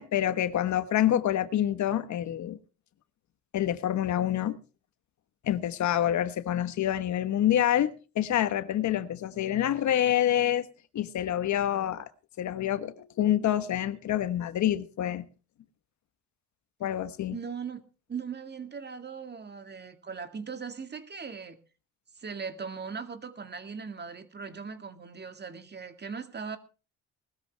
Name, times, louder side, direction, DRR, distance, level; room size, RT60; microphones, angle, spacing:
voice 1, 0.0-2.6 3.5-4.6 5.4-10.7 10.9-12.1 12.4-15.3 16.8-17.4, left 11 dB, 70° left, 1.2 m, -27 dB
voice 2, 17.3-17.8 18.1-21.6 22.2-26.6, right 6 dB, 35° right, 2.0 m, -39 dB
19.5 x 13.0 x 3.4 m
cardioid pair, 90°, 30 cm